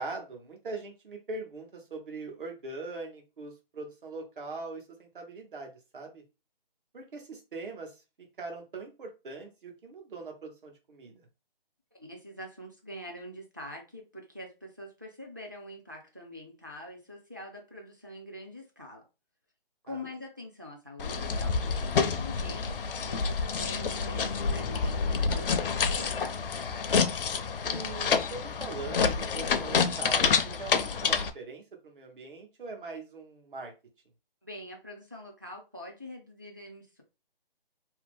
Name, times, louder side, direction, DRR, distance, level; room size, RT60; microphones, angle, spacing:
voice 1, 0.0-6.2 6.9-8.0 8.4-11.3 19.9-20.0 27.6-33.7, right 3 dB, 60° right, 2 dB, 1.1 m, -41 dB
voice 2, 11.9-19.0 19.8-26.4 34.4-37.0, left 1 dB, 20° right, 0 dB, 0.3 m, -45 dB
sound 1, 21.0-31.3, left 5 dB, 65° left, 0.5 m, -28 dB
2.7 x 2.0 x 3.4 m, 0.28 s
hypercardioid pair, 160°, 29 cm